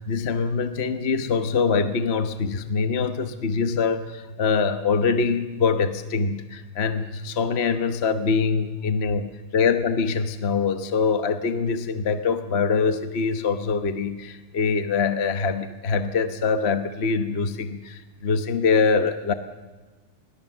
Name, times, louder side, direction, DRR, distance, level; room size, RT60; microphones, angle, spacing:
voice 1, 0.0-19.3, left 5 dB, 40° left, 9 dB, 1.0 m, -24 dB
26.0 x 21.0 x 7.4 m, 1.3 s
omnidirectional pair, 2.4 m